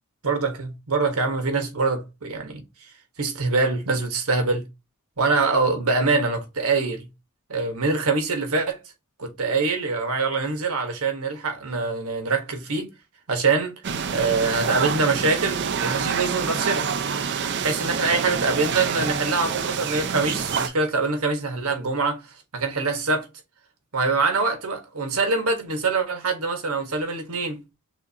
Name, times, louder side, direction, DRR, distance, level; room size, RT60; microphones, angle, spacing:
voice 1, 0.2-2.9 3.2-4.6 5.2-7.1 7.5-8.8 9.2-12.9 13.3-13.7 14.1-16.9 17.6-22.2 22.5-23.3 23.9-27.6, right 3 dB, 80° right, 1.4 m, -24 dB
sound 1, 13.8-20.7, right 6 dB, 50° right, 0.5 m, -27 dB
6.3 x 2.6 x 2.8 m
head